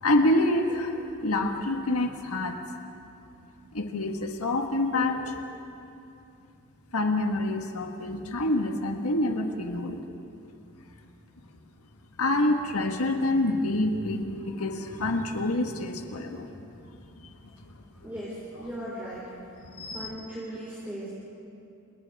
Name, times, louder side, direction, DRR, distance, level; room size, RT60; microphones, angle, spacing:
voice 1, 0.0-2.6 3.7-5.5 6.9-10.0 12.2-16.8 17.2-17.3 19.6-20.1, left 1 dB, 90° left, 3 dB, 1.6 m, -27 dB
voice 2, 18.0-19.3 19.9-21.1, equal, 10° right, -9 dB, 4.7 m, -37 dB
29.5 x 28.5 x 3.6 m, 2.7 s
head